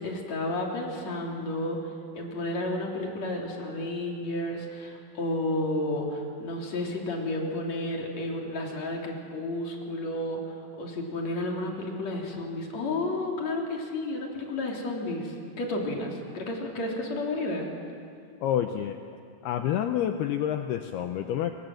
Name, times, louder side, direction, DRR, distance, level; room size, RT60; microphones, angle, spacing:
voice 1, 0.0-1.8 2.1-17.7, left 2 dB, 40° left, 0 dB, 3.9 m, -32 dB
voice 2, 18.4-19.0 19.4-21.5, left 10 dB, 80° left, 6 dB, 2.4 m, -28 dB
26.5 x 24.5 x 7.8 m, 2.4 s
omnidirectional pair, 5.5 m